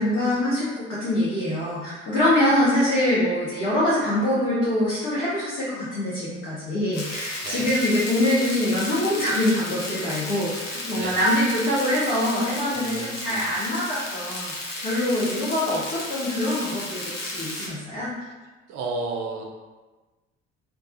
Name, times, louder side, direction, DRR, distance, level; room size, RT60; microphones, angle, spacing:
voice 1, 0.0-18.1, left 1 dB, 60° left, -11 dB, 1.0 m, -24 dB
sound 1, 6.9-17.7, left 2 dB, 80° left, 0.6 m, -34 dB
voice 2, 12.7-13.5 18.7-19.6, right 3 dB, 50° right, 1 dB, 0.5 m, -33 dB
2.4 x 2.3 x 2.5 m, 1.2 s
figure-of-eight pair, 50°, 36 cm